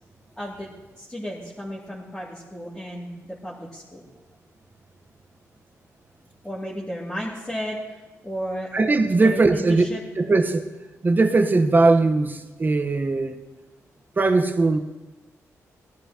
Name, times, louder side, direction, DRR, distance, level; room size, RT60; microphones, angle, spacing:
voice 1, 0.4-0.7 1.0-4.0 6.4-7.8 8.2-8.8 9.1-10.0, equal, 10° left, 2.6 m, -33 dB
voice 2, 8.7-9.8 10.1-10.7 11.0-13.4 14.2-14.8, right 3 dB, 30° right, 1.1 m, -19 dB
19.0 x 11.5 x 2.9 m
cardioid pair, 85°, 6 cm